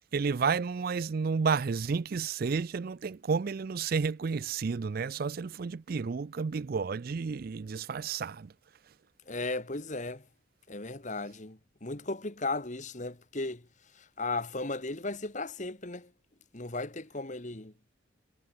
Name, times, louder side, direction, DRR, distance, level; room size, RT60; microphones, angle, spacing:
voice 1, 0.1-8.5, right 5 dB, 45° right, 0.4 m, -31 dB
voice 2, 9.3-10.2 10.7-13.6 14.0-16.1 16.5-17.7, left 3 dB, 40° left, 1.7 m, -36 dB
head